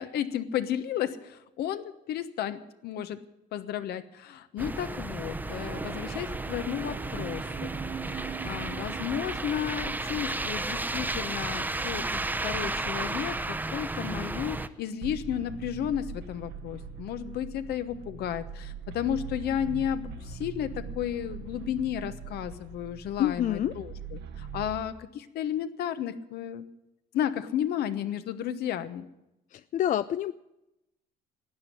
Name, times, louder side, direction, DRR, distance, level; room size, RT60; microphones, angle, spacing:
voice 1, 0.0-3.2 3.5-7.7 8.1-26.7 27.1-29.0, left 10 dB, 70° left, 11 dB, 1.1 m, -33 dB
sound 1, 4.6-14.7, right 2 dB, 10° right, 0.7 m, -33 dB
sound 2, 5.5-16.6 16.9-17.5 18.1-18.2, right 10 dB, 50° right, 0.6 m, -46 dB
sound 3, 15.0-24.8, right 6 dB, 80° right, 1.5 m, -41 dB
voice 2, 23.2-23.8 29.5-30.3, left 11 dB, 50° left, 14 dB, 0.4 m, -27 dB
12.5 x 9.3 x 10.0 m, 0.92 s
cardioid pair, 110°, 17 cm